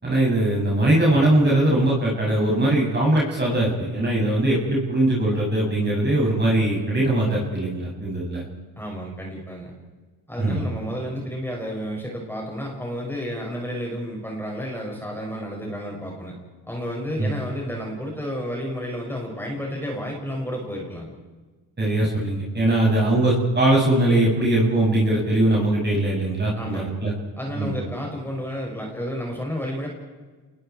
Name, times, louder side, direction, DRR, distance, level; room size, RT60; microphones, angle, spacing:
voice 1, 0.0-8.4 10.4-10.7 17.2-17.4 21.8-27.1 27.5-27.8, right 1 dB, 25° right, -4 dB, 7.7 m, -21 dB
voice 2, 8.8-9.7 10.3-16.4 16.7-21.1 26.6-26.9 27.4-29.9, equal, 5° left, -2 dB, 6.9 m, -31 dB
28.0 x 21.5 x 4.8 m, 1.3 s
supercardioid pair, 70°, 45 cm